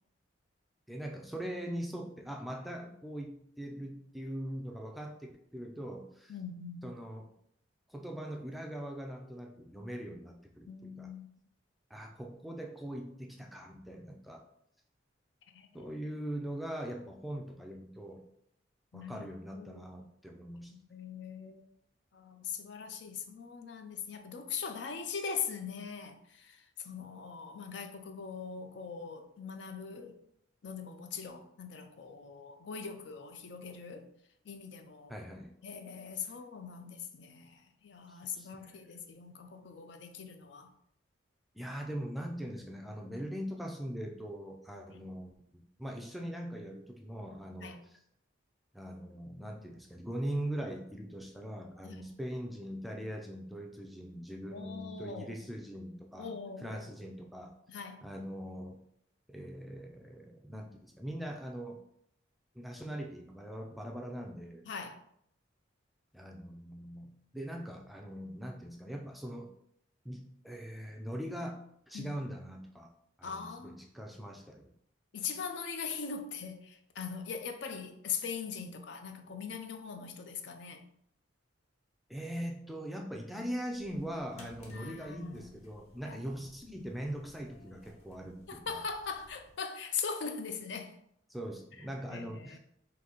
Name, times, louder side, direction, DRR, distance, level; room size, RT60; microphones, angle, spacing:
voice 1, 0.9-6.3 6.8-7.3 7.9-11.1 11.9-14.4 15.7-18.2 18.9-20.7 35.1-35.5 38.1-38.8 41.6-48.0 48.7-57.5 58.0-58.8 59.3-61.8 62.5-64.7 66.1-69.5 70.0-72.9 73.2-74.7 82.1-88.8 91.3-92.6, equal, ahead, 0.3 m, -41 dB
voice 2, 6.3-6.9 10.7-11.3 15.5-15.9 18.9-19.8 20.7-21.6 22.1-30.2 30.6-34.1 34.5-35.1 35.6-40.7 44.9-45.0 47.6-47.8 51.8-52.1 54.5-55.3 56.2-56.8 57.7-58.0 64.7-64.9 71.9-72.1 73.2-73.7 75.1-80.9 84.4-85.5 86.0-86.2 88.5-90.9 92.1-92.6, left 6 dB, 65° left, 0.5 m, -41 dB
sound 1, 83.7-89.6, left 1 dB, 35° left, 0.8 m, -59 dB
3.9 x 2.7 x 3.7 m
head